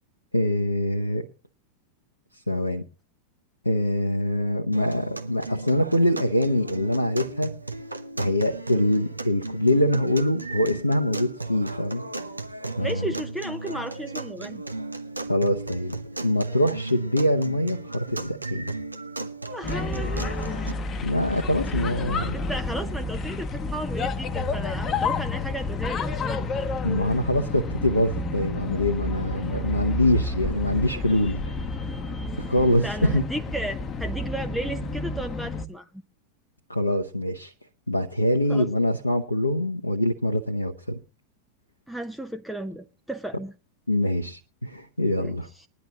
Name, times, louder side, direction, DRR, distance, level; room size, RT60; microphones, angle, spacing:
voice 1, 0.3-1.2 2.5-2.8 3.6-7.5 8.2-12.0 12.8-13.0 15.3-16.0 16.2-18.7 21.0-22.4 26.8-31.4 32.4-33.2 36.7-37.5 37.9-41.0 43.9-45.5, left 1 dB, 85° left, 0.8 m, -24 dB
sound 1, 4.7-20.7, right 2 dB, 85° right, 0.9 m, -35 dB
voice 2, 12.8-14.6 19.5-20.8 22.3-26.7 32.8-36.0 38.5-38.7 41.9-43.5 45.2-45.7, right 1 dB, ahead, 0.6 m, -34 dB
sound 2, 19.6-35.7, left 3 dB, 25° left, 0.9 m, -30 dB
20.5 x 10.5 x 2.9 m
figure-of-eight pair, 90°, 0 cm